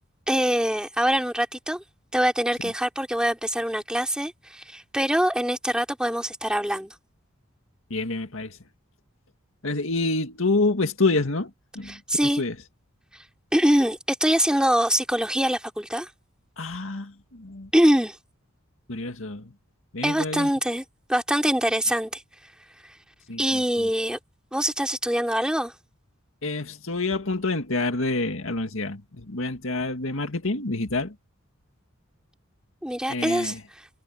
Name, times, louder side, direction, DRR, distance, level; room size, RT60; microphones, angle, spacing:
voice 1, 0.3-1.8 2.1-6.9 11.8-12.4 13.5-16.1 17.7-18.2 20.0-20.8 21.1-22.2 23.4-24.2 24.5-25.7 32.8-33.6, equal, 5° right, 3.0 m, -24 dB
voice 2, 7.9-8.6 9.6-11.5 11.8-12.0 12.2-12.6 16.6-17.7 18.9-19.5 19.9-20.5 23.3-23.9 26.4-31.1 33.1-33.6, left 3 dB, 65° left, 2.1 m, -27 dB
head